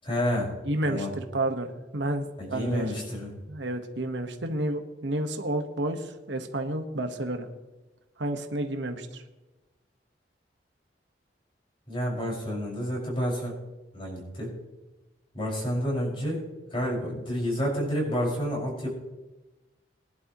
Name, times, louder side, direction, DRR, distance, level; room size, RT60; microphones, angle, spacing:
voice 1, 0.0-0.5 0.8-1.1 2.4-3.3 11.9-13.5 13.9-14.5 15.3-16.4 16.7-18.9, equal, 30° left, -3 dB, 5.8 m, -29 dB
voice 2, 0.6-2.9 3.5-7.5 8.2-9.2, right 1 dB, 85° right, 5 dB, 1.4 m, -31 dB
21.5 x 11.0 x 3.1 m, 1.1 s
head